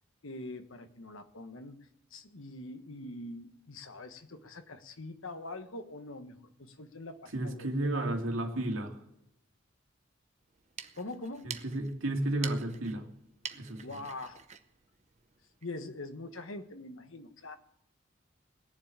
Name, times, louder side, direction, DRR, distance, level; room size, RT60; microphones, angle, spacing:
voice 1, 0.2-1.9 2.1-8.1 11.0-11.5 13.8-14.4 15.6-17.6, left 2 dB, 80° left, 8 dB, 1.3 m, -43 dB
voice 2, 7.3-9.0 11.4-13.1 13.6-14.0, right 1 dB, 80° right, 3 dB, 2.2 m, -32 dB
sound 1, 10.5-15.8, right 8 dB, 35° right, 0.7 m, -47 dB
19.5 x 7.4 x 8.8 m, 0.81 s
head